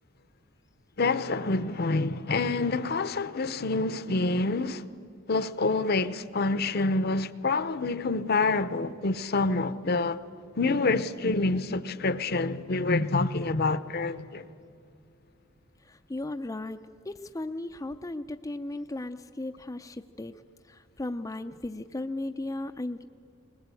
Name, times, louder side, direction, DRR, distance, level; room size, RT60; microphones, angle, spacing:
voice 1, 1.0-4.8 5.3-10.2 10.6-14.4, left 3 dB, 50° left, 0.7 m, -27 dB
voice 2, 15.9-16.8 17.1-20.3 20.7-23.0, left 2 dB, 15° left, 0.4 m, -36 dB
21.0 x 20.5 x 8.4 m
head